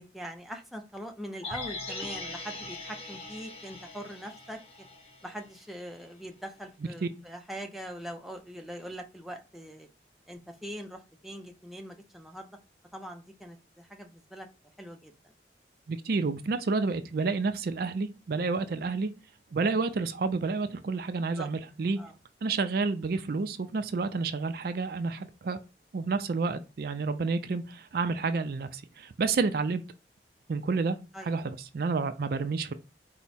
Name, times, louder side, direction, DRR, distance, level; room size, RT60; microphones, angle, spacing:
voice 1, 0.0-4.6 5.2-9.9 10.3-12.6 12.9-14.5 14.8-15.1 21.4-21.5 22.0-22.1 31.1-31.5, equal, ahead, 0.5 m, -42 dB
sound 1, 1.4-5.6 5.9-6.0, left 2 dB, 35° left, 1.0 m, -41 dB
voice 2, 15.9-19.1 19.5-22.0 22.4-25.6 25.9-29.8 30.5-31.0 31.2-32.7, right 4 dB, 55° right, 0.4 m, -30 dB
4.5 x 2.1 x 4.0 m
head